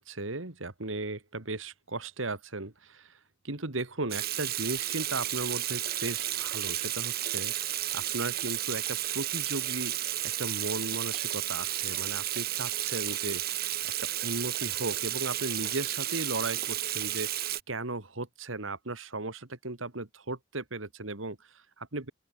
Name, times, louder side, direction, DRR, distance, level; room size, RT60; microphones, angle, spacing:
voice 1, 0.0-3.2 3.4-13.7 14.0-17.3 17.7-22.1, right 2 dB, 85° right, 2.4 m, -36 dB
Water tap faucet / Sink (filling or washing), 4.1-17.6, right 13 dB, 50° right, 2.6 m, -32 dB
open air
head